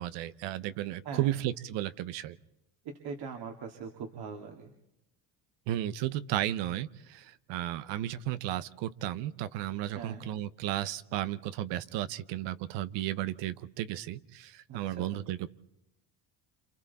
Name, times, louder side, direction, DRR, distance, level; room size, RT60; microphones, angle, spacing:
voice 1, 0.0-2.4 5.7-15.5, right 13 dB, 75° right, 15 dB, 1.0 m, -34 dB
voice 2, 2.8-4.7 9.9-10.2 14.7-15.2, right 5 dB, 60° right, 2 dB, 2.6 m, -41 dB
28.0 x 28.0 x 4.2 m, 0.82 s
supercardioid pair, 105°, 43 cm